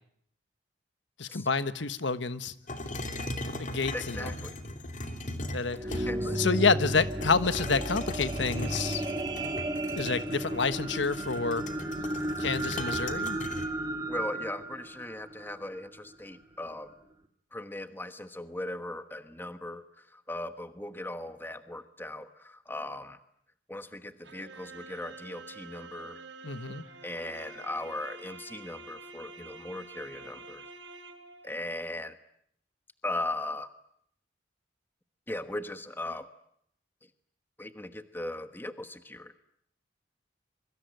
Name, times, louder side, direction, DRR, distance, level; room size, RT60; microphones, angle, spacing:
voice 1, 1.2-2.5 3.6-4.3 5.5-9.0 9.9-11.6 12.4-13.4 26.4-26.8, left 4 dB, 75° left, 13 dB, 1.3 m, -29 dB
sound 1, 2.7-6.4 7.0-13.7, left 1 dB, 40° left, 2.8 m, -39 dB
voice 2, 3.9-4.5 5.8-6.4 14.1-16.9 17.5-23.2 23.7-26.2 27.0-30.6 31.4-32.2 33.0-33.7 35.3-36.3 37.6-39.3, left 1 dB, 10° left, 10 dB, 1.2 m, -38 dB
sound 2, 5.5-16.0 16.6-16.7, right 1 dB, 20° right, 2.3 m, -34 dB
sound 3, 24.2-31.5, right 3 dB, 85° right, 3.2 m, -47 dB
25.0 x 24.0 x 9.3 m, 0.70 s
head